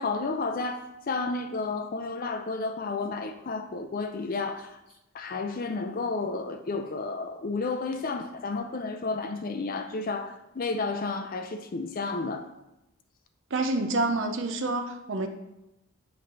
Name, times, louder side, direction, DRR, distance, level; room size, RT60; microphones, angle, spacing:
voice 1, 0.0-4.8 5.1-12.5, left 3 dB, 40° left, 7 dB, 0.4 m, -32 dB
voice 2, 13.5-15.3, right 2 dB, 55° right, 6 dB, 0.5 m, -28 dB
8.4 x 3.2 x 5.4 m, 0.91 s
head